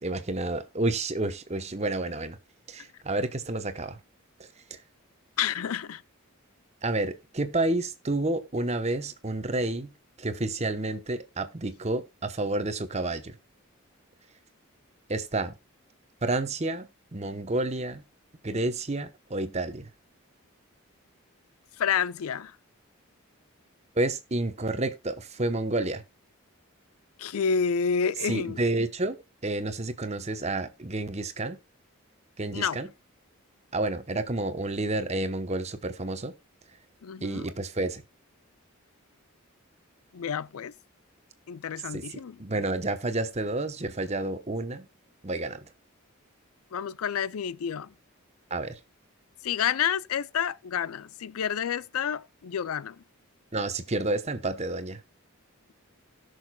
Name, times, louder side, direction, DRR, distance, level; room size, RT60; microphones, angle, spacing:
voice 1, 0.0-2.4 2.7-4.0 4.7-4.8 6.8-9.9 10.2-13.3 15.1-15.6 16.2-18.0 18.4-19.9 24.0-26.0 28.2-29.2 29.4-31.6 32.4-32.9 33.7-36.3 37.2-38.0 41.9-44.9 45.2-45.6 48.5-48.7 53.5-55.0, right 2 dB, 30° right, 0.9 m, -30 dB
voice 2, 5.4-6.0 21.8-22.5 27.2-28.6 32.5-32.8 37.0-37.5 40.1-40.7 41.5-42.4 46.7-47.9 49.4-53.0, left 7 dB, 85° left, 0.4 m, -29 dB
17.5 x 6.5 x 2.3 m
head